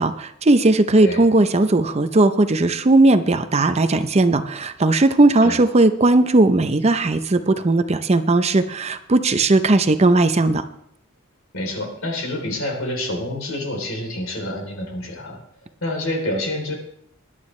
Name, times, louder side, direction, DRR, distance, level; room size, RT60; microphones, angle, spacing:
voice 1, 0.0-10.6, right 2 dB, 30° right, 10 dB, 0.6 m, -17 dB
voice 2, 11.5-15.4 15.8-16.7, left 1 dB, 75° left, 1 dB, 3.4 m, -27 dB
20.5 x 11.0 x 3.2 m, 0.74 s
head